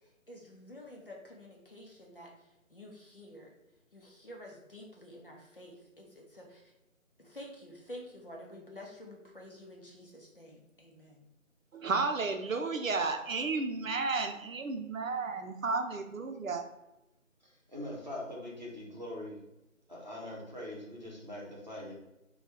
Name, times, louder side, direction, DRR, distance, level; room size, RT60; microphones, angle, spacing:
voice 1, 0.3-2.3 2.7-3.5 3.9-6.6 7.2-11.2, left 1 dB, 40° left, -2 dB, 0.7 m, -49 dB
voice 2, 11.7-16.6, right 4 dB, 75° right, 6 dB, 0.6 m, -32 dB
voice 3, 17.7-19.4 19.9-21.9, left 1 dB, 35° right, -4 dB, 0.8 m, -42 dB
3.2 x 2.3 x 4.3 m, 0.95 s
figure-of-eight pair, 170°, 40 cm